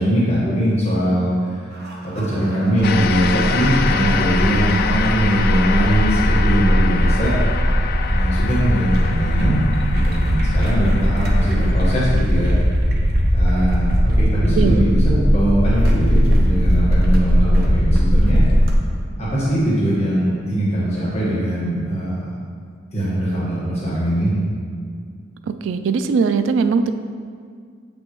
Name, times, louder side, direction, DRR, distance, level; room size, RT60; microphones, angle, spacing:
voice 1, 0.0-1.6 2.1-7.3 8.1-9.6 9.9-12.5 13.3-18.4 19.2-22.4 22.9-24.3, right 1 dB, 35° left, -8 dB, 1.4 m, -21 dB
sound 1, 1.8-18.7, equal, 55° right, 0.8 m, -18 dB
sound 2, 2.8-12.2, left 6 dB, 50° left, 0.3 m, -27 dB
voice 2, 5.5-5.9 14.5-14.8 25.6-26.9, right 5 dB, 70° right, 9 dB, 0.3 m, -20 dB
7.5 x 5.2 x 3.1 m, 2.1 s
head